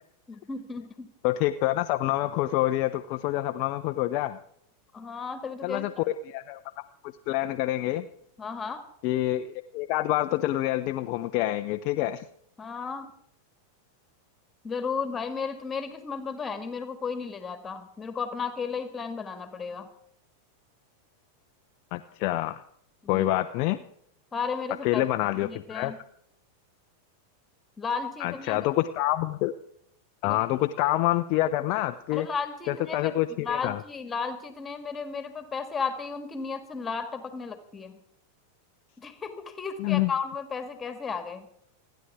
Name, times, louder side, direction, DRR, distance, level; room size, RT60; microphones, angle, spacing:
voice 1, 0.3-1.1 4.9-5.9 8.4-8.8 12.6-13.1 14.6-19.9 23.0-23.3 24.3-25.1 25.4-26.0 27.8-28.7 30.3-30.4 32.1-33.1 33.4-38.0 39.0-41.5, left 5 dB, 15° left, 8 dB, 1.9 m, -34 dB
voice 2, 1.2-4.4 5.6-5.9 6.3-6.6 7.0-8.1 9.0-12.3 21.9-22.6 23.1-23.8 24.8-25.9 28.2-29.5 30.2-32.3 32.7-33.8 39.8-40.1, left 15 dB, 45° left, 8 dB, 0.6 m, -27 dB
28.5 x 10.5 x 3.6 m, 0.70 s
figure-of-eight pair, 90°, 0 cm